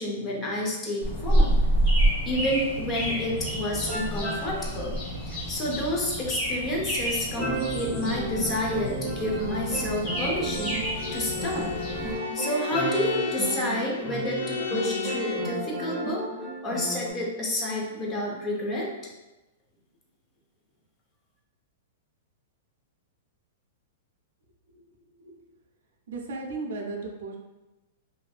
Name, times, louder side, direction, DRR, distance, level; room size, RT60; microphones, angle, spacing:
voice 1, 0.0-1.6 2.3-5.0 5.3-11.7 12.1-16.3 16.6-18.9, left 1 dB, 20° left, -2 dB, 0.5 m, -30 dB
sound 1, 1.0-12.2, right 1 dB, 40° left, 1.3 m, -28 dB
sound 2, 3.9-4.7 7.4-17.1, right 2 dB, 5° right, 1.0 m, -33 dB
Bowed string instrument, 10.9-15.6, left 6 dB, 80° left, 0.5 m, -34 dB
voice 2, 26.1-27.4, right 3 dB, 70° right, 1 dB, 0.5 m, -35 dB
2.6 x 2.5 x 2.3 m, 1.0 s
supercardioid pair, 160°, 0 cm